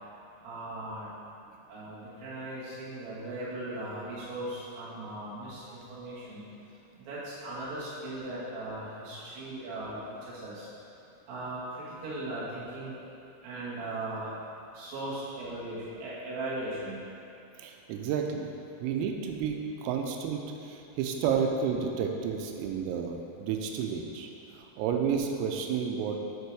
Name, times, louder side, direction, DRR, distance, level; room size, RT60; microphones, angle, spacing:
voice 1, 0.4-1.1 1.7-6.4 7.0-10.7 11.3-13.0 13.4-14.3 14.7-17.0, right 1 dB, 55° right, -9 dB, 2.1 m, -38 dB
voice 2, 17.6-18.5 18.8-20.4 20.6-26.2, right 6 dB, 90° right, 3 dB, 3.3 m, -31 dB
9.5 x 4.5 x 4.8 m, 2.7 s
omnidirectional pair, 6.0 m